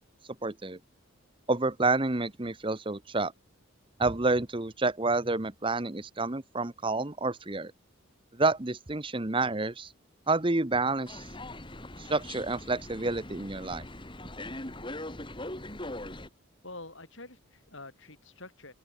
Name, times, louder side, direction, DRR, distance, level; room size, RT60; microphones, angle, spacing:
voice 1, 0.4-0.8 1.5-3.3 4.0-7.7 8.3-9.9 10.3-11.2 12.0-13.9, right 3 dB, 25° right, 1.0 m, -29 dB
sound 1, 11.1-16.3, left 1 dB, 25° left, 3.7 m, -41 dB
voice 2, 16.6-18.7, left 2 dB, 60° left, 7.7 m, -46 dB
open air
head